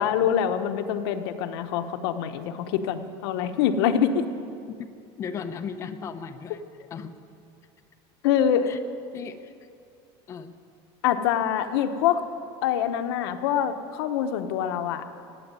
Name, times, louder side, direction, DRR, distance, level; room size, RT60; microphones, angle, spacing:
voice 1, 0.0-4.2 8.2-8.7 11.0-12.2 12.6-15.0, left 9 dB, 75° left, 8 dB, 1.0 m, -25 dB
voice 2, 5.2-6.6 6.9-7.1 8.7-8.8 9.1-9.5 10.3-10.5, left 6 dB, 20° left, 8 dB, 0.7 m, -36 dB
17.0 x 8.3 x 9.3 m, 2.4 s
cardioid pair, 175°, 13 cm